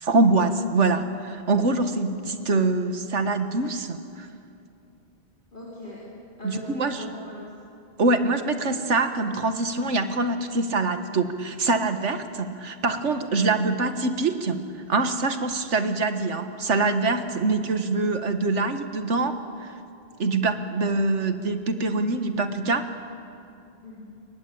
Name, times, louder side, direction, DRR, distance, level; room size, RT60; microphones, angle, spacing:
voice 1, 0.0-4.3 6.4-7.0 8.0-14.6 14.9-19.3 19.6-19.7 20.2-22.8, right 3 dB, 80° right, 8 dB, 1.8 m, -24 dB
voice 2, 5.5-6.0 6.4-7.4 17.6-17.7 23.8-24.0, left 1 dB, 45° left, -6 dB, 4.7 m, -39 dB
28.5 x 23.0 x 8.7 m, 2.6 s
omnidirectional pair, 1.2 m